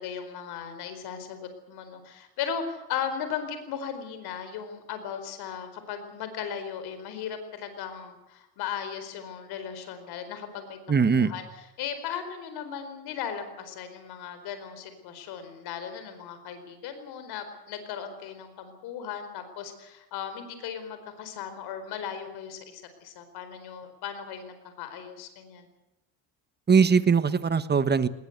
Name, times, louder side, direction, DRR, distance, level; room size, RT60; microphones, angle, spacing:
voice 1, 0.0-10.8 11.1-11.4 11.8-25.7, left 8 dB, 75° left, 9 dB, 4.6 m, -37 dB
voice 2, 10.9-11.3 26.7-28.1, right 5 dB, 25° right, 13 dB, 1.4 m, -21 dB
21.0 x 19.5 x 8.2 m, 0.94 s
cardioid pair, 105°, 38 cm